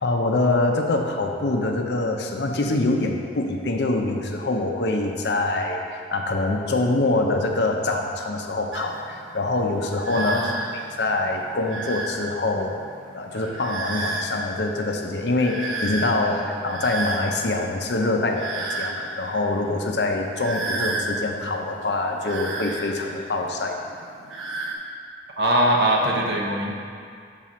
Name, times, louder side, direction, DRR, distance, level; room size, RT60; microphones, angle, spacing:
voice 1, 0.0-12.8 13.1-23.8, left 2 dB, 60° left, 2 dB, 0.6 m, -25 dB
sound 1, 8.7-24.7, right 2 dB, 90° right, 0.9 m, -33 dB
voice 2, 10.1-10.5 25.4-26.7, right 1 dB, 60° right, -1 dB, 0.9 m, -21 dB
5.8 x 4.0 x 6.1 m, 2.3 s
head